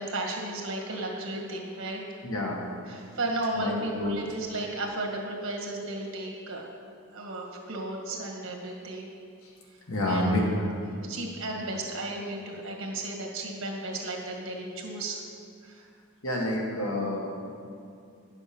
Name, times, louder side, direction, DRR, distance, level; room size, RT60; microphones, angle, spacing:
voice 1, 0.0-2.0 2.9-6.6 7.1-9.1 10.1-10.3 11.0-15.2 15.6-15.9, right 2 dB, 65° right, -1 dB, 1.8 m, -34 dB
voice 2, 2.2-2.6 3.5-4.2 9.4-9.5 9.9-10.4 16.2-17.2, left 1 dB, 65° left, -2 dB, 1.8 m, -28 dB
9.9 x 6.9 x 6.2 m, 2.4 s
head